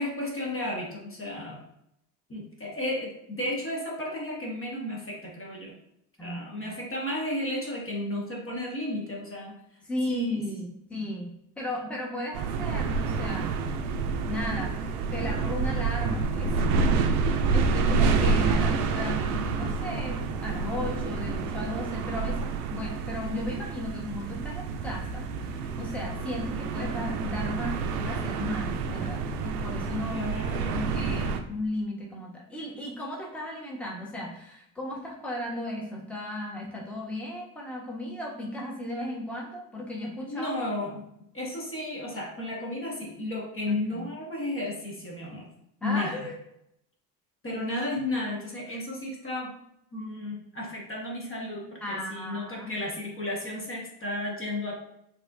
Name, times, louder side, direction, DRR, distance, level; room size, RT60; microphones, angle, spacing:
voice 1, 0.0-1.6 2.3-5.7 6.2-9.5 10.1-10.4 17.3-17.6 30.1-30.9 40.3-41.1 41.3-45.5 45.8-46.2 47.4-49.6 49.9-54.7, left 1 dB, 30° left, -2 dB, 1.2 m, -33 dB
voice 2, 6.2-6.7 9.9-13.5 14.3-14.8 15.1-30.3 30.7-40.5 43.7-44.1 45.8-46.4 51.8-52.7, left 1 dB, 5° left, -3 dB, 1.1 m, -35 dB
sound 1, 12.3-31.4, right 4 dB, 80° right, 0.6 m, -28 dB
4.6 x 3.0 x 2.5 m, 0.77 s
hypercardioid pair, 65°, 45 cm